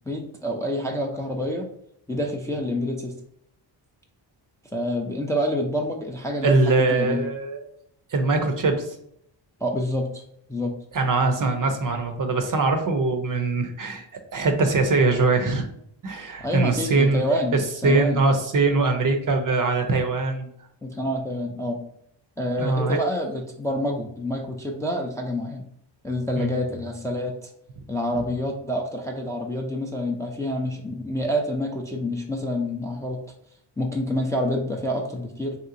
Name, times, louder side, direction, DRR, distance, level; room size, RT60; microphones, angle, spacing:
voice 1, 0.1-1.7 2.1-3.1 4.7-7.2 9.6-10.2 10.5-10.7 16.4-18.2 20.8-21.8 22.4-25.7 26.0-27.5 27.9-33.2 33.8-35.6, left 1 dB, 5° left, 0 dB, 0.4 m, -27 dB
voice 2, 6.4-7.6 8.1-9.0 10.9-14.1 14.3-15.7 16.0-17.2 17.8-20.5 22.6-23.0 26.4-26.5, right 3 dB, 45° right, 6 dB, 0.6 m, -22 dB
3.1 x 2.8 x 2.6 m, 0.70 s
cardioid pair, 75°, 47 cm